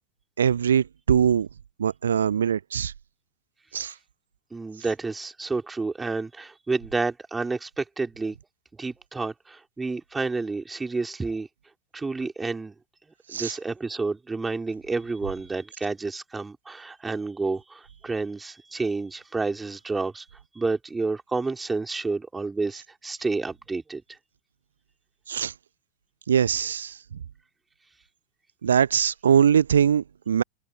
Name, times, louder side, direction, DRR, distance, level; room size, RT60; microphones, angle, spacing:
voice 1, 0.4-1.5 1.8-2.9 3.7-3.9 13.3-13.5 25.3-25.5 26.3-27.0 28.6-30.4, right 8 dB, 65° right, 0.4 m, -22 dB
voice 2, 4.5-8.4 8.8-11.5 11.9-12.8 13.3-20.3 20.5-24.0, right 3 dB, 10° right, 3.9 m, -30 dB
open air
figure-of-eight pair, 90°, 0 cm